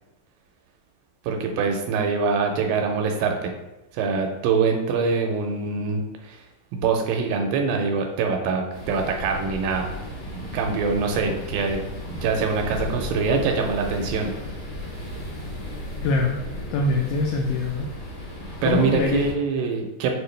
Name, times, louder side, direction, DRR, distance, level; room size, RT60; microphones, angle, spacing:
voice 1, 1.3-3.5 3.9-6.4 6.7-9.9 10.3-11.8 12.1-14.3 18.6-20.1, right 5 dB, 80° right, 3 dB, 2.1 m, -24 dB
sound 1, 8.7-19.3, left 1 dB, 45° left, 1.5 m, -34 dB
voice 2, 16.0-16.4 16.7-17.9 18.6-19.2, left 3 dB, 85° left, 1 dB, 1.8 m, -23 dB
6.5 x 2.4 x 3.2 m, 0.99 s
omnidirectional pair, 4.2 m